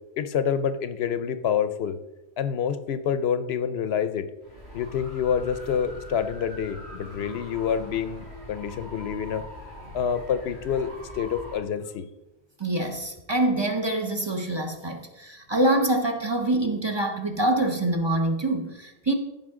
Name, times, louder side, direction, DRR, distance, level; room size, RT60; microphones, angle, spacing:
voice 1, 0.2-2.0 2.4-4.3 4.7-9.4 9.9-12.1, left 7 dB, 75° left, 12 dB, 0.8 m, -27 dB
sound 1, 4.4-11.6, equal, 80° right, 3.0 m, -42 dB
voice 2, 12.6-19.1, right 1 dB, 25° right, 3 dB, 0.8 m, -25 dB
14.5 x 5.4 x 3.7 m, 0.99 s
omnidirectional pair, 1.1 m